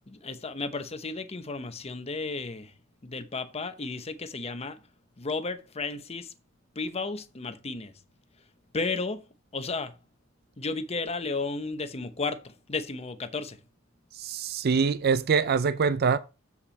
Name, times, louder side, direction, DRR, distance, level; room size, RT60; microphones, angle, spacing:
voice 1, 0.1-2.7 3.0-4.8 5.2-6.3 6.7-7.9 8.7-9.2 9.5-10.0 10.6-13.6, left 3 dB, 30° left, 0.8 m, -33 dB
voice 2, 14.1-16.2, right 5 dB, 50° right, 0.4 m, -24 dB
7.4 x 7.2 x 4.1 m
head